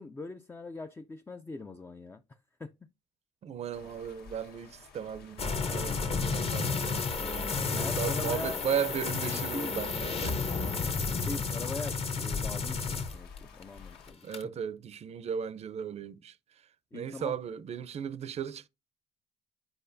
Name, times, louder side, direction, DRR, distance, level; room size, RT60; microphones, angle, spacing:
voice 1, 0.0-2.2 2.6-2.7 7.3-8.6 9.2-9.9 11.2-14.3 16.9-17.4, left 3 dB, 15° left, 0.4 m, -41 dB
voice 2, 3.4-10.4 14.2-16.3 16.9-18.7, right 8 dB, 40° right, 0.5 m, -36 dB
sound 1, 3.7-14.1, left 5 dB, 70° left, 1.3 m, -47 dB
sound 2, 5.4-13.6 14.0-14.4, left 4 dB, 35° left, 0.9 m, -32 dB
8.7 x 4.8 x 2.6 m
cardioid pair, 110°, 17 cm